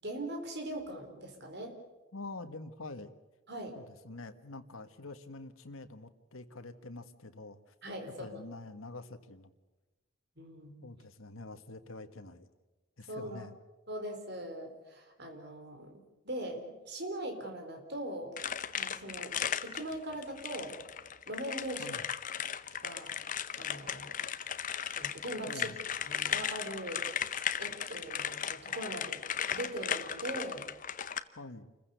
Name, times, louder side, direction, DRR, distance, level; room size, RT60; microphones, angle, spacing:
voice 1, 0.0-1.8 3.5-3.8 7.8-8.5 10.4-10.8 13.1-13.5 13.9-15.9 16.2-18.4 18.8-19.3 19.6-20.7 21.3-21.9 22.8-23.1 23.5-24.2 25.0-25.7 26.0-27.0 27.6-30.6, right 1 dB, 55° right, 4 dB, 4.1 m, -41 dB
voice 2, 2.1-3.1 3.7-7.7 8.2-9.5 10.8-12.5 13.0-13.5 21.8-22.0 25.5-25.8 31.4-31.7, left 2 dB, 85° left, 9 dB, 1.6 m, -46 dB
sound 1, 18.4-31.2, left 8 dB, 40° left, 0.8 m, -36 dB
28.0 x 15.5 x 8.3 m, 1.1 s
head